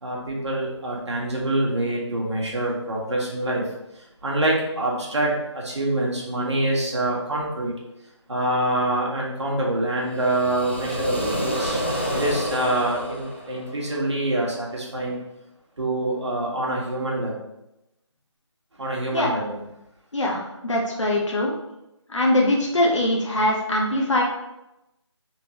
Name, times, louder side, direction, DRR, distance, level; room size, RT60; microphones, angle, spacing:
voice 1, 0.0-3.7 3.9-7.7 8.3-11.8 12.1-15.2 15.8-17.3 18.8-19.5, right 1 dB, 65° right, -3 dB, 1.4 m, -25 dB
sound 1, 10.0-14.1, equal, 25° left, 0.4 m, -28 dB
voice 2, 20.1-21.5 22.1-24.2, left 1 dB, 80° left, -2 dB, 1.0 m, -22 dB
3.8 x 3.7 x 2.9 m, 0.91 s
figure-of-eight pair, 175°, 16 cm